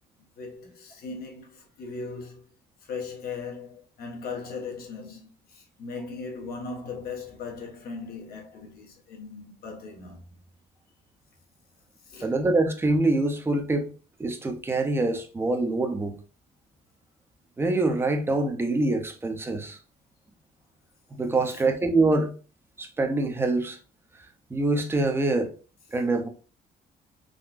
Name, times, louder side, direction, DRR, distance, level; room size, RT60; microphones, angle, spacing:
voice 1, 0.4-2.5 2.8-10.4 12.0-12.4 21.5-21.7, left 4 dB, 65° left, 1.1 m, -38 dB
voice 2, 12.2-13.9 14.2-16.2 17.6-19.8 21.1-22.3 22.8-23.8 24.5-25.5 25.9-26.3, right 2 dB, 15° right, 0.6 m, -25 dB
3.7 x 2.2 x 2.5 m
cardioid pair, 110°, 17 cm